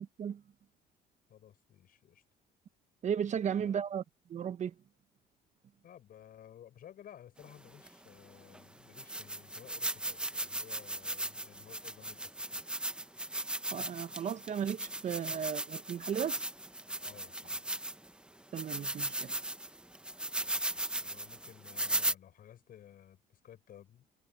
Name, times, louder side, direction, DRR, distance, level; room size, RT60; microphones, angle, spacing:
voice 1, 1.3-2.2 3.6-3.8 5.8-12.6 17.0-17.6 20.4-24.1, left 10 dB, 60° left, 5.9 m, -56 dB
voice 2, 3.0-4.0 4.3-4.7 13.7-16.5 18.5-19.4, right 8 dB, 45° right, 0.9 m, -35 dB
sound 1, 7.8-7.9 8.5-8.6 8.9-18.1 18.5-22.1, right 1 dB, 5° right, 0.8 m, -37 dB
cardioid pair, 110°, 17 cm